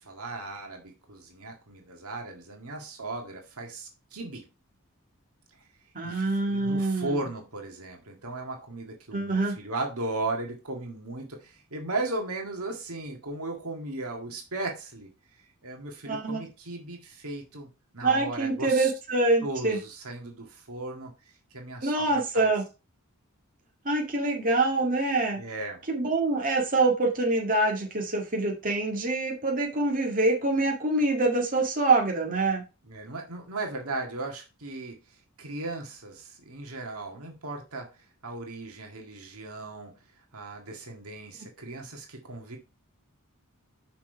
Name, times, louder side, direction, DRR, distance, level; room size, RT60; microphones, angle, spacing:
voice 1, 0.0-4.4 6.0-15.1 15.6-17.7 17.9-18.9 19.4-21.1 21.5-22.5 25.4-25.8 32.8-35.0 35.4-37.9 38.2-39.9 40.3-42.6, right 2 dB, 70° right, 1.9 m, -36 dB
voice 2, 6.0-7.2 9.1-9.5 16.1-16.4 18.0-19.8 21.8-22.6 23.9-25.4 25.9-32.6, right 2 dB, 40° right, 1.9 m, -25 dB
6.1 x 5.9 x 4.5 m
head